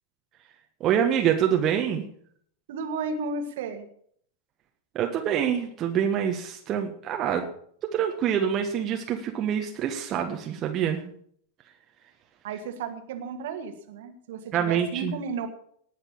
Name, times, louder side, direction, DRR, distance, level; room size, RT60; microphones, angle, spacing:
voice 1, 0.8-2.0 4.9-7.4 7.9-11.1 14.5-15.1, right 9 dB, 30° right, 3 dB, 1.5 m, -26 dB
voice 2, 2.7-3.8 12.4-15.5, right 4 dB, 55° right, 7 dB, 1.9 m, -33 dB
18.5 x 6.6 x 7.2 m, 0.63 s
figure-of-eight pair, 90°, 0 cm